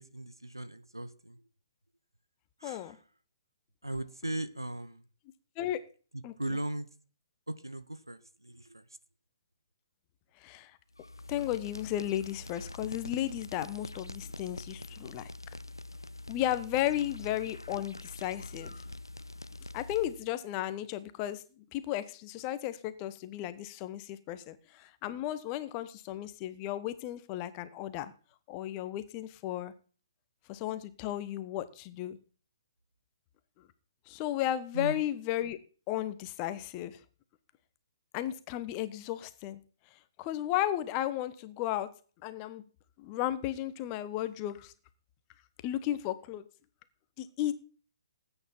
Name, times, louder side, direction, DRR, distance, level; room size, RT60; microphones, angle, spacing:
voice 1, 0.0-1.4 2.6-3.0 3.8-5.1 6.1-6.9 7.5-8.9 34.7-35.0, right 1 dB, 85° right, 13 dB, 1.2 m, -38 dB
voice 2, 2.6-3.0 5.6-5.8 6.2-6.3 10.4-10.8 11.3-15.3 16.3-18.8 19.7-28.1 28.5-29.7 30.5-32.2 34.1-35.6 35.9-37.0 38.1-39.6 40.2-41.9 42.2-42.6 43.0-44.7 45.6-46.5 47.2-47.5, left 13 dB, 25° left, 13 dB, 1.2 m, -34 dB
sound 1, 10.9-20.3, left 2 dB, 85° left, 0.6 m, -45 dB
19.5 x 9.1 x 4.5 m, 0.40 s
figure-of-eight pair, 130°, 2 cm